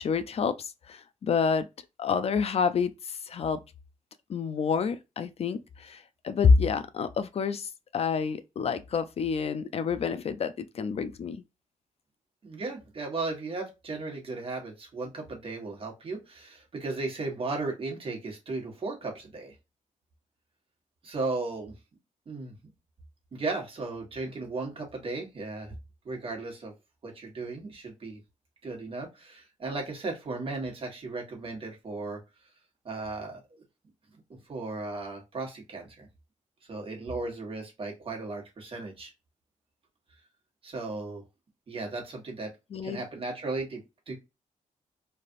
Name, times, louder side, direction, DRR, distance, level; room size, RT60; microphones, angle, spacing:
voice 1, 0.0-1.7 2.0-3.6 4.3-11.4 42.7-43.0, left 5 dB, 50° left, 0.4 m, -28 dB
voice 2, 12.4-19.5 21.0-21.7 22.3-22.5 23.3-25.7 26.0-26.7 27.0-28.2 28.6-32.2 32.8-33.4 34.5-36.1 36.7-39.1 40.6-41.2 41.7-42.5 42.8-44.1, right 3 dB, 45° right, 1.3 m, -36 dB
3.3 x 2.4 x 2.5 m
wide cardioid pair, 110°, 13 cm